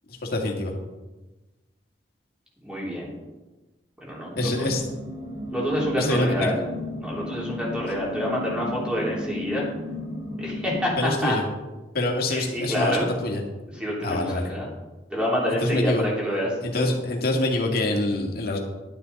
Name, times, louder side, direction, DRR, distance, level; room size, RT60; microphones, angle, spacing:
voice 1, 0.2-0.7 4.4-4.8 6.0-6.5 11.0-11.4 11.9-13.4 14.0-14.5 15.6-16.1 16.6-18.6, left 2 dB, 60° left, 1 dB, 2.0 m, -25 dB
voice 2, 2.6-3.1 4.0-4.7 5.5-6.6 7.0-9.6 10.4-11.3 12.3-13.1 13.7-14.7 15.1-16.8, equal, 5° right, -4 dB, 3.2 m, -27 dB
sound 1, 4.3-10.9, left 1 dB, 25° right, 3.7 m, -34 dB
11.5 x 9.7 x 4.1 m, 1.1 s
head